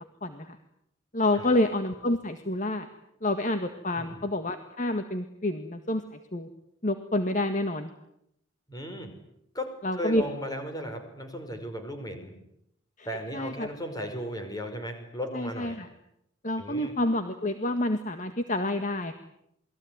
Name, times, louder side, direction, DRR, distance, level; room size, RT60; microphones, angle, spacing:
voice 1, 0.2-0.6 1.1-2.9 3.2-6.5 6.8-7.9 9.8-10.2 13.3-13.7 15.3-15.9 16.4-19.1, left 1 dB, 40° left, 8 dB, 1.8 m, -28 dB
voice 2, 8.7-9.1 9.5-12.3 13.0-15.8 16.6-16.9, equal, 20° left, 6 dB, 5.7 m, -36 dB
28.5 x 21.5 x 9.7 m, 0.77 s
head